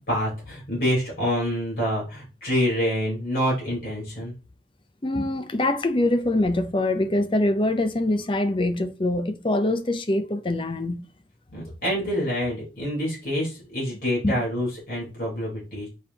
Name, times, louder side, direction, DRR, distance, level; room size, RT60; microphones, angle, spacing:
voice 1, 0.1-4.3 11.5-15.9, equal, 55° left, 3.9 m, -27 dB
voice 2, 5.0-11.0 14.2-14.4, left 1 dB, 30° left, 0.6 m, -24 dB
6.5 x 5.2 x 2.9 m
head